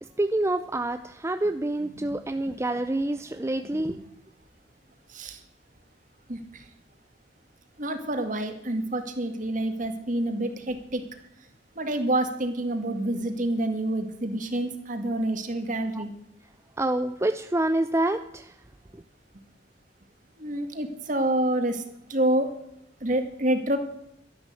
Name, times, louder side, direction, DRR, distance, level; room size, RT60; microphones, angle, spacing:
voice 1, 0.2-4.0 16.8-18.5, right 1 dB, 15° right, 8 dB, 0.5 m, -27 dB
voice 2, 1.8-2.2 2.4-2.6 3.9-4.0 5.1-5.4 6.3-6.6 7.8-11.1 11.8-16.1 20.4-21.8 22.1-22.5 23.0-23.8, right 1 dB, 45° right, 7 dB, 2.0 m, -28 dB
12.5 x 11.0 x 7.8 m, 0.77 s
head